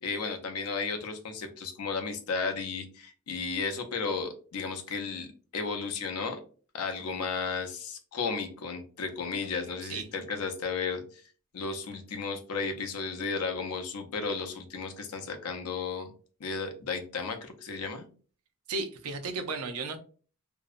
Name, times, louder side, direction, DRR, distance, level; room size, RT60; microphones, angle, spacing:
voice 1, 0.0-5.3 5.5-6.4 6.7-11.2 11.5-16.1 16.4-18.1, left 4 dB, 85° left, 5 dB, 0.5 m, -34 dB
voice 2, 18.7-20.0, right 3 dB, 75° right, 7 dB, 0.5 m, -34 dB
2.6 x 2.0 x 2.4 m, 0.40 s
head